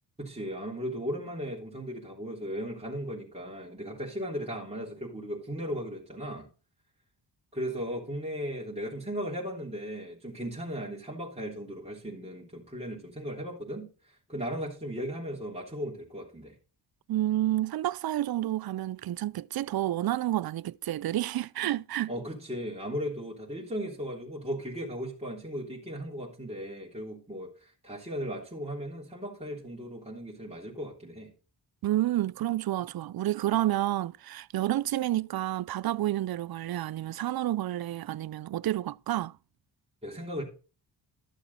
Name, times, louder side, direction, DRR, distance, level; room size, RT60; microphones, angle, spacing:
voice 1, 0.2-6.5 7.5-16.5 22.1-31.3 40.0-40.4, equal, 15° right, 3.3 m, -37 dB
voice 2, 17.1-22.1 31.8-39.3, right 14 dB, 60° right, 0.5 m, -29 dB
12.5 x 7.0 x 4.2 m
cardioid pair, 75°, 42 cm